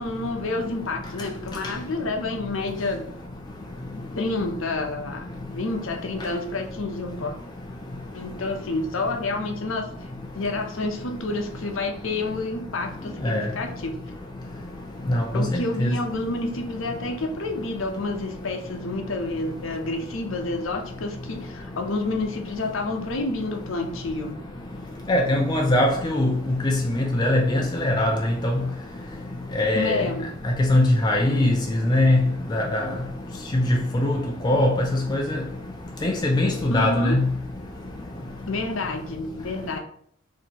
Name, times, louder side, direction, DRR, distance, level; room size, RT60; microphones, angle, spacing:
voice 1, 0.0-3.1 3.9-7.4 8.1-9.9 10.3-14.0 15.3-24.4 29.7-30.3 36.7-37.2 38.5-39.8, left 2 dB, 65° left, 0.7 m, -29 dB
voice 2, 15.1-15.5 15.8-15.9 25.1-28.5 29.6-30.0 30.6-31.6 31.8-32.2 32.5-32.9 33.5-33.7 33.9-35.4 36.0-37.3, left 1 dB, 20° left, 0.3 m, -21 dB
4.2 x 2.8 x 2.8 m
head